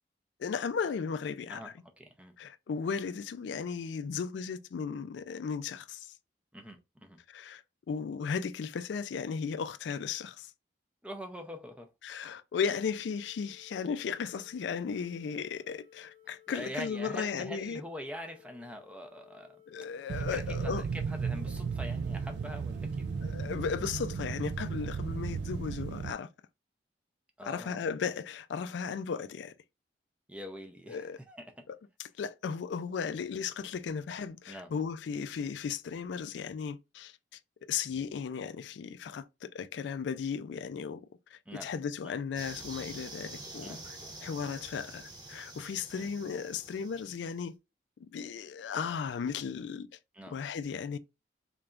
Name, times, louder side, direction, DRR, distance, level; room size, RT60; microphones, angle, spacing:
voice 1, 0.4-1.7 2.4-6.1 7.3-7.6 7.9-10.5 12.0-17.8 19.7-20.8 23.2-26.3 27.4-29.5 30.9-31.2 31.7-37.4 37.7-41.0 41.3-47.5 48.0-49.9 50.3-51.0, left 6 dB, 75° left, 0.3 m, -36 dB
voice 2, 1.5-2.3 6.5-7.2 11.0-11.9 16.5-19.6 20.1-22.9 27.4-27.8 30.3-31.7 34.5-34.7 41.5-41.7 42.0-42.1 43.6-43.8 45.9-46.1 50.1-50.4, equal, 5° right, 0.5 m, -44 dB
sound 1, 12.7-24.1, left 11 dB, 50° right, 0.9 m, -60 dB
sound 2, 20.1-26.1, right 5 dB, 65° right, 0.3 m, -35 dB
sound 3, 42.4-47.4, right 2 dB, 25° right, 0.9 m, -47 dB
3.9 x 3.3 x 2.4 m
head